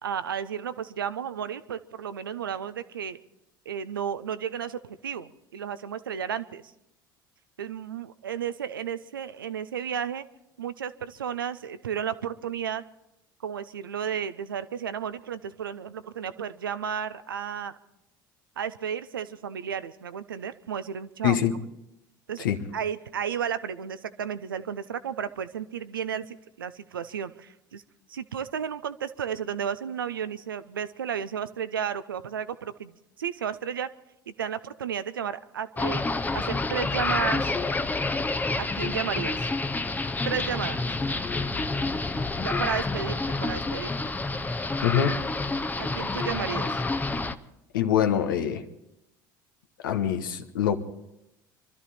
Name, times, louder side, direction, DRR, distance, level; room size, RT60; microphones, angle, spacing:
voice 1, 0.0-3.2 3.7-6.7 7.6-10.2 10.6-12.8 13.4-17.8 18.6-21.4 22.3-22.5 22.7-27.8 28.1-33.9 34.3-36.0 36.3-37.6 38.5-39.5 40.2-40.8 42.4-43.9 45.8-46.8, right 8 dB, 85° right, 14 dB, 0.6 m, -33 dB
voice 2, 21.2-21.5 22.4-22.6 44.8-45.2 47.7-48.6 49.8-50.8, left 9 dB, 75° left, 7 dB, 1.1 m, -24 dB
sound 1, 35.8-47.4, left 3 dB, 15° left, 0.7 m, -28 dB
24.5 x 12.5 x 4.2 m, 0.87 s
hypercardioid pair, 65°, 11 cm